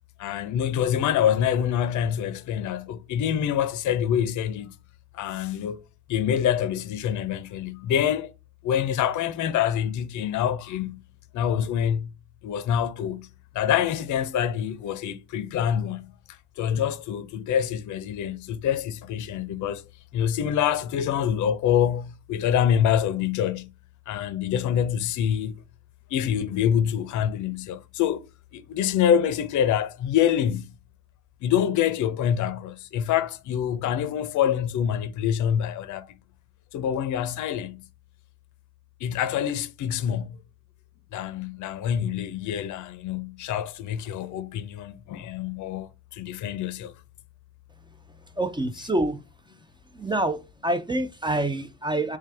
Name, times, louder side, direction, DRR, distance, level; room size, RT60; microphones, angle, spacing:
voice 1, 0.2-4.7 5.1-5.8 6.1-8.3 8.6-11.0 11.3-12.1 12.4-13.3 13.5-16.1 16.6-19.8 20.1-23.7 24.1-25.6 26.1-28.3 28.5-30.7 31.4-36.1 36.7-37.8 39.0-40.3 41.1-46.9, left 9 dB, 55° left, 0.5 m, -26 dB
voice 2, 48.4-49.2 49.9-52.2, right 1 dB, 15° right, 0.4 m, -26 dB
3.3 x 3.3 x 3.3 m
supercardioid pair, 60°, 36 cm